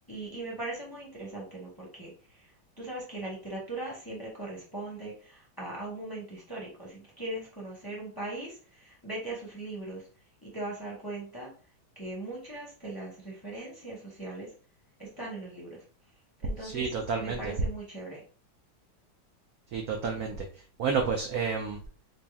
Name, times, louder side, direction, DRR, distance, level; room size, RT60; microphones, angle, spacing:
voice 1, 0.1-10.1 10.4-11.5 11.9-14.5 15.0-15.8 16.1-16.9 17.2-18.2, right 2 dB, 20° left, -4 dB, 0.7 m, -40 dB
voice 2, 16.6-17.5 19.7-21.8, right 5 dB, 75° right, 2 dB, 0.8 m, -31 dB
4.2 x 2.0 x 3.4 m, 0.40 s
omnidirectional pair, 2.2 m